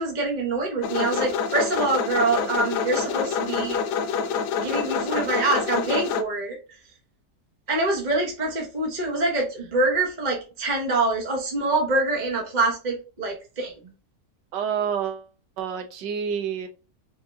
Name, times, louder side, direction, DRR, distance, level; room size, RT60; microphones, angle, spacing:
voice 1, 0.0-3.8 4.6-6.6 7.7-13.7, right 3 dB, 30° right, 0.9 m, -25 dB
sound 1, 0.8-6.2, left 6 dB, 80° left, 1.2 m, -27 dB
voice 2, 14.5-15.2 15.6-16.7, right 7 dB, 85° right, 1.5 m, -28 dB
5.3 x 2.7 x 3.4 m
omnidirectional pair, 1.8 m